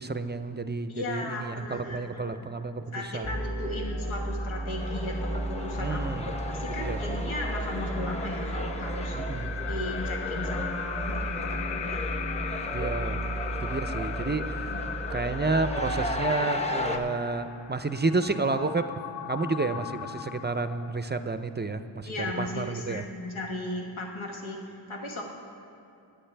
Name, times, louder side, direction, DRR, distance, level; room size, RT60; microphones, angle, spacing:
voice 1, 0.0-3.3 5.8-6.3 6.8-7.0 9.1-9.5 12.7-13.2 13.6-14.8 15.1-19.0 19.3-23.0, right 3 dB, 20° right, 10 dB, 0.5 m, -30 dB
voice 2, 0.9-2.4 2.9-12.0 14.7-14.8 22.0-25.2, left 1 dB, 80° left, 0 dB, 1.4 m, -36 dB
sound 1, 3.2-16.1, right 1 dB, 30° left, 2.0 m, -34 dB
sound 2, 3.9-21.3, left 8 dB, 65° left, 0.6 m, -39 dB
sound 3, 4.8-17.0, left 1 dB, 15° left, 1.0 m, -36 dB
20.0 x 9.6 x 3.4 m, 2.6 s
cardioid pair, 55°, 47 cm